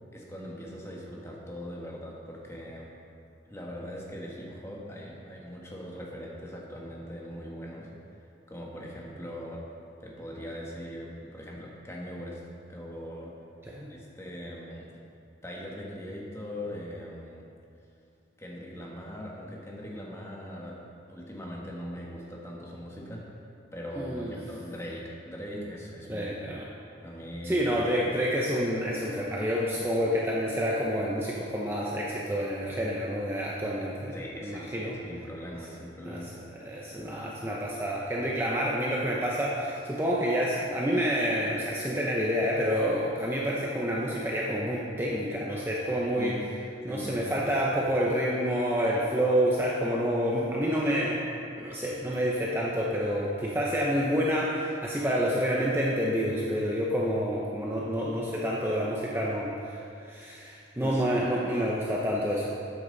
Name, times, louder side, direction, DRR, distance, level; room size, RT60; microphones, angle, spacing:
voice 1, 0.1-2.9 3.4-7.9 8.5-9.6 10.0-12.4 12.7-13.3 13.9-14.9 15.4-17.5 18.4-23.3 23.7-26.3 27.0-27.7 34.1-36.3 46.2-46.5 46.9-47.5 60.8-61.0, equal, 15° left, -3 dB, 1.6 m, -40 dB
voice 2, 23.9-24.4 26.1-26.6 27.4-35.0 36.0-36.2 36.6-46.3 46.8-51.2 51.6-62.4, equal, 10° right, -4 dB, 0.9 m, -28 dB
13.0 x 9.0 x 4.1 m, 2.5 s
head